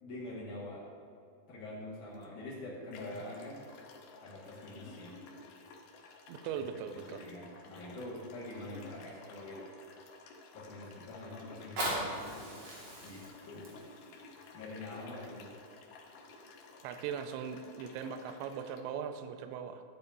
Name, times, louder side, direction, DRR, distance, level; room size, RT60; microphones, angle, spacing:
voice 1, 0.0-0.8 1.5-3.6 4.2-5.2 6.5-9.6 10.5-12.5 13.0-13.8 14.5-15.5, left 1 dB, 55° left, -6 dB, 2.4 m, -45 dB
sound 1, 2.1-2.3 2.9-18.8, left 3 dB, 85° left, 2.1 m, -53 dB
voice 2, 6.3-7.2 16.8-19.8, right 7 dB, 80° right, 8 dB, 2.7 m, -40 dB
Fire, 11.5-16.5 17.1-17.2, right 1 dB, 50° right, 2.0 m, -41 dB
13.5 x 9.0 x 2.7 m, 2.4 s
omnidirectional pair, 5.6 m